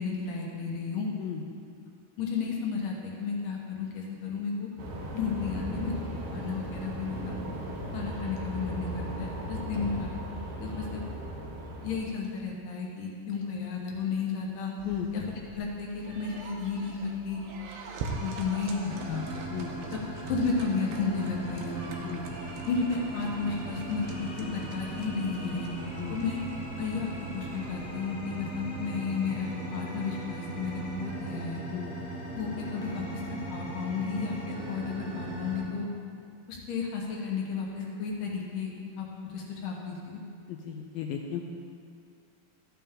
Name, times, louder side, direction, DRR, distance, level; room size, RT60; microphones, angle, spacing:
voice 1, 0.0-1.1 2.2-4.7 5.1-5.9 6.3-7.4 7.9-10.2 10.6-11.0 11.8-14.7 15.1-15.2 15.5-17.4 18.2-19.3 19.9-20.0 20.3-21.9 22.6-25.7 26.1-26.4 26.8-27.1 27.3-31.6 32.3-35.9 36.5-38.7 39.0-39.1 39.3-40.2, left 5 dB, 65° left, -1 dB, 2.5 m, -33 dB
sound 1, 4.8-12.0, right 1 dB, 75° right, 1.3 m, -37 dB
sound 2, 14.8-27.7, right 4 dB, 90° right, 3.0 m, -44 dB
sound 3, 18.9-35.6, right 2 dB, 15° left, 1.6 m, -39 dB
voice 2, 40.5-41.4, left 9 dB, 80° left, 2 dB, 2.1 m, -35 dB
13.0 x 8.9 x 3.7 m, 2.3 s
omnidirectional pair, 4.6 m